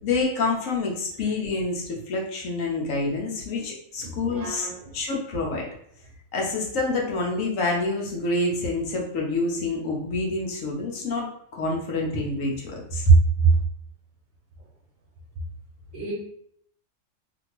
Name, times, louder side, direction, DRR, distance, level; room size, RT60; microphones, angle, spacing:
voice 1, 0.0-5.7 6.3-13.5, equal, 75° left, -1 dB, 1.1 m, -25 dB
voice 2, 4.0-4.8 15.9-16.1, right 2 dB, 85° right, -1 dB, 1.0 m, -37 dB
2.8 x 2.5 x 2.9 m, 0.68 s
omnidirectional pair, 1.4 m